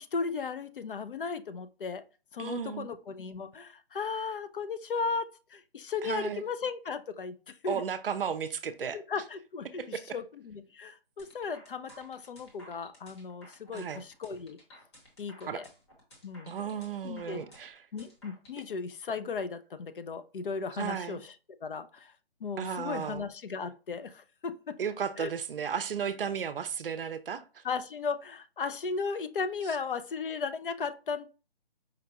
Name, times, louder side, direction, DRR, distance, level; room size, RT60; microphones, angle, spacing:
voice 1, 0.0-2.0 2.3-7.9 8.8-14.6 15.2-15.7 16.2-16.6 17.0-17.4 17.9-21.3 21.6-22.1 22.4-24.8 25.2-25.3 27.6-31.3, left 5 dB, 60° left, 0.5 m, -36 dB
voice 2, 2.4-2.9 6.0-6.4 7.7-9.0 9.8-10.2 13.7-14.0 15.5-15.6 16.5-17.8 20.8-21.2 22.6-23.3 24.8-27.6, right 7 dB, 65° right, 0.5 m, -34 dB
sound 1, 11.2-18.6, equal, 25° left, 1.1 m, -55 dB
5.0 x 2.2 x 2.8 m
hypercardioid pair, 165°, 30 cm